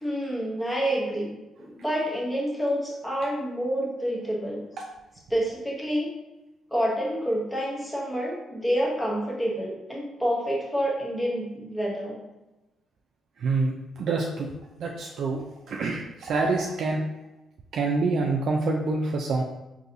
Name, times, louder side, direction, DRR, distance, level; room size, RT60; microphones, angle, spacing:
voice 1, 0.0-4.6 5.3-6.1 6.7-12.2, equal, 10° left, -2 dB, 0.9 m, -28 dB
voice 2, 13.4-14.5 14.8-17.0 17.7-19.4, right 3 dB, 65° right, 0 dB, 0.3 m, -26 dB
3.9 x 2.7 x 2.6 m, 1.0 s
cardioid pair, 90°, 0 cm